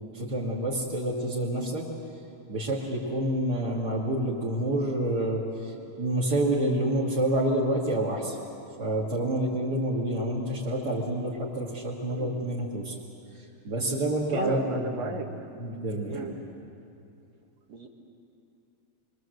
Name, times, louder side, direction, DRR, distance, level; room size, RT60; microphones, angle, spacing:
voice 1, 0.1-1.8 2.5-8.4 8.8-13.0 13.3-15.2 15.5-16.3, right 1 dB, 35° right, -7 dB, 2.7 m, -28 dB
voice 2, 14.3-15.3 16.1-16.3 17.7-17.9, right 3 dB, 55° right, 2 dB, 3.1 m, -33 dB
27.0 x 23.5 x 8.0 m, 2.7 s
omnidirectional pair, 3.6 m